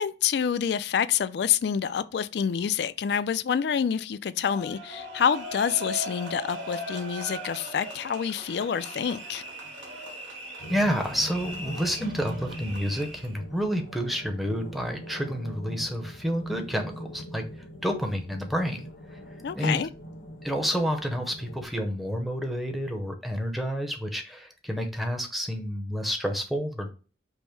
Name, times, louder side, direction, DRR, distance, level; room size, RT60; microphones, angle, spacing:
voice 1, 0.0-9.4 19.4-19.9, left 8 dB, 60° left, 0.3 m, -27 dB
sound 1, 4.4-13.4, right 1 dB, 90° right, 1.5 m, -39 dB
sound 2, 10.6-21.6, equal, 85° left, 1.0 m, -42 dB
voice 2, 10.7-17.4 17.8-18.9 19.5-19.8 20.4-26.9, equal, ahead, 0.6 m, -29 dB
5.3 x 2.1 x 4.5 m
head